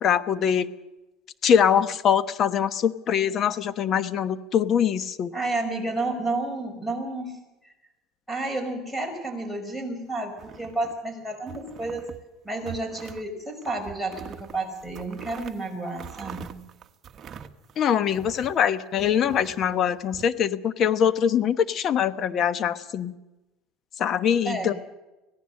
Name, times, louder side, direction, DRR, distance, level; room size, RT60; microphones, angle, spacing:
voice 1, 0.0-0.7 1.4-5.3 17.8-23.1 24.0-24.7, left 8 dB, 40° left, 12 dB, 1.1 m, -23 dB
voice 2, 5.3-7.4 7.6-7.7 8.3-12.1 12.4-16.6 24.4-24.8, right 2 dB, 5° left, 6 dB, 5.6 m, -31 dB
sound 1, 10.3-11.1 11.5-12.2 12.6-13.3 13.6-18.6 19.0-20.2, right 8 dB, 35° right, 1.3 m, -43 dB
25.0 x 17.5 x 6.6 m, 1.0 s
supercardioid pair, 125°, 0 cm